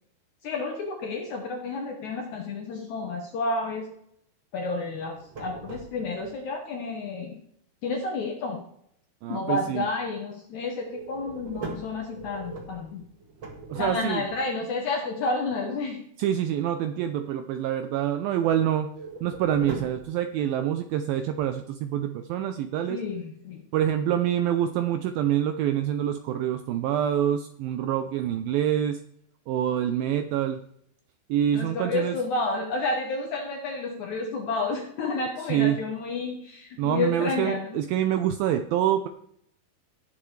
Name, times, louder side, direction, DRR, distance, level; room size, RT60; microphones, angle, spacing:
voice 1, 0.4-3.9 4.5-7.4 7.8-8.6 9.3-13.0 13.8-16.0 22.9-23.6 31.5-37.8, left 3 dB, 70° left, 2 dB, 1.9 m, -30 dB
sound 1, 5.0-6.3 10.8-14.4 18.9-20.1, right 3 dB, 60° right, 1.2 m, -40 dB
voice 2, 9.2-9.9 13.7-14.2 16.2-18.9 19.2-23.0 23.7-29.0 29.5-30.6 31.3-32.2 35.4-35.8 36.8-39.1, right 10 dB, 80° right, 8 dB, 2.1 m, -26 dB
18.0 x 7.3 x 3.2 m, 0.70 s
omnidirectional pair, 4.7 m